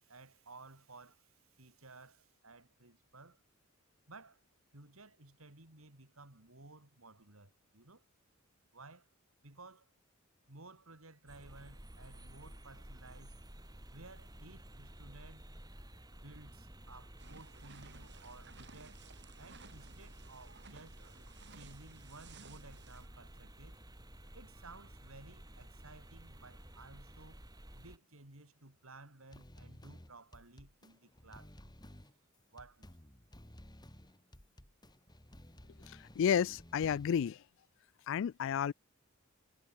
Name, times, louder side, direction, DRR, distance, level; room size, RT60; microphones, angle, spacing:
voice 1, 0.0-3.4 4.1-4.4 4.7-8.0 8.7-9.1 9.4-9.9 10.5-13.4 13.9-15.5 16.1-19.1 19.4-21.0 21.5-23.8 24.3-27.5 27.7-31.8 32.5-32.9, right 3 dB, 85° right, 3.9 m, -56 dB
sound 1, 11.3-28.0, right 1 dB, 20° right, 3.6 m, -53 dB
sound 2, 17.2-23.1, right 4 dB, 60° right, 5.0 m, -58 dB
sound 3, 29.3-37.3, left 1 dB, 20° left, 2.6 m, -55 dB
voice 2, 36.2-37.3 38.1-38.7, left 8 dB, 65° left, 0.3 m, -31 dB
head